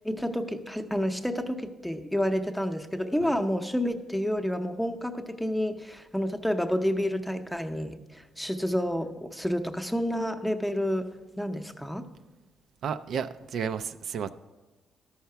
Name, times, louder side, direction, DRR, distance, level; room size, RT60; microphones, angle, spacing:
voice 1, 0.0-11.1 11.4-12.0, equal, 5° left, 6 dB, 0.7 m, -29 dB
voice 2, 12.8-14.3, right 7 dB, 65° right, 10 dB, 0.4 m, -32 dB
13.0 x 5.7 x 5.7 m, 1.2 s
cardioid pair, 115°, 0 cm